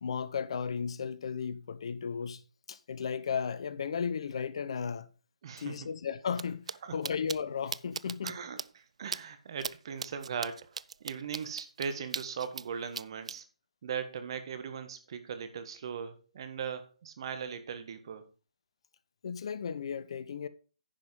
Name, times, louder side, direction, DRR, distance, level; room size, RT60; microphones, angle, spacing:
voice 1, 0.0-2.4 2.7-5.1 5.6-6.6 6.9-8.4 19.2-20.5, left 6 dB, 50° left, 0.8 m, -35 dB
voice 2, 5.4-5.8 6.8-7.0 8.2-13.4 13.8-18.2, right 7 dB, 45° right, 1.5 m, -39 dB
sound 1, 6.3-6.4 6.7-6.8 7.0-7.4 7.7-8.3 8.6-8.7 9.1-9.2 9.6-9.7 10.0-12.6 12.9-13.3, right 5 dB, 65° right, 0.4 m, -37 dB
10.5 x 5.3 x 5.3 m
figure-of-eight pair, 145°, 4 cm